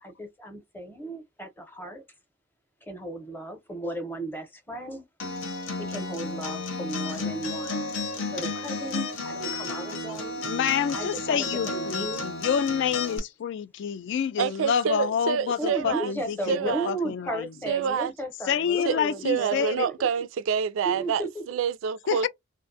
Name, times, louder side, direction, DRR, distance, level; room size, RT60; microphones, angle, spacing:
voice 1, 0.0-2.0 2.8-5.0 5.8-7.9 8.3-10.4 10.9-12.3 15.6-20.2 20.8-21.4, right 1 dB, 10° left, 0.7 m, -35 dB
Acoustic guitar, 5.2-13.2, left 3 dB, 75° left, 0.9 m, -32 dB
voice 2, 10.4-17.5 18.5-19.9 22.1-22.3, left 7 dB, 60° left, 0.3 m, -28 dB
voice 3, 14.4-16.1 16.5-16.9 17.7-18.1 18.8-18.9 19.2-22.3, right 7 dB, 70° right, 0.3 m, -27 dB
2.4 x 2.2 x 2.5 m
head